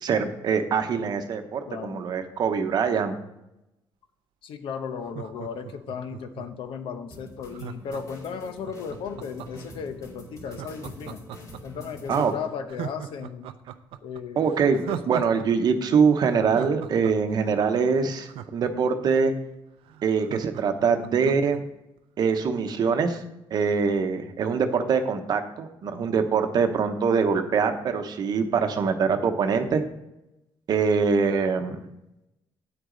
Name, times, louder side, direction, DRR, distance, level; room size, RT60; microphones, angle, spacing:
voice 1, 0.0-3.2 12.1-12.3 14.4-19.3 20.0-21.6 22.2-23.2 23.5-29.8 30.7-31.8, right 5 dB, 50° right, 7 dB, 0.9 m, -23 dB
voice 2, 1.7-2.1 4.4-11.2 11.6-13.5 14.0-14.5 14.8-15.1, left 6 dB, 70° left, 8 dB, 0.8 m, -35 dB
Laughter, 5.0-6.7 7.5-9.7 10.4-11.8 12.2-12.3 12.7-15.5 15.7-15.8 16.2-19.1 19.5-19.6 19.8-21.6 22.0-22.1, right 10 dB, 75° right, 0.5 m, -38 dB
sound 1, 7.1-12.4, equal, 35° left, 2.4 m, -45 dB
9.0 x 8.0 x 3.8 m, 0.91 s
cardioid pair, 150°, 9 cm